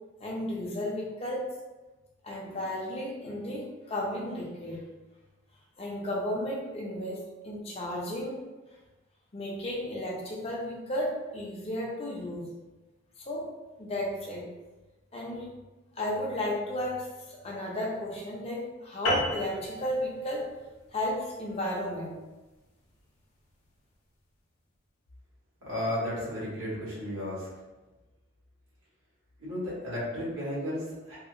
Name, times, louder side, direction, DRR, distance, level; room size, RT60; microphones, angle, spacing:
voice 1, 0.2-1.5 2.2-4.8 5.8-8.4 9.3-12.5 13.2-13.5 13.8-14.5 15.1-15.5 16.0-20.5 20.9-22.2, left 1 dB, 30° left, -2 dB, 0.4 m, -33 dB
sound 1, 19.1-23.8, left 1 dB, 85° left, 0.6 m, -35 dB
voice 2, 25.7-27.5 29.4-31.2, left 1 dB, 85° right, -8 dB, 1.4 m, -33 dB
2.7 x 2.0 x 2.5 m, 1.1 s
head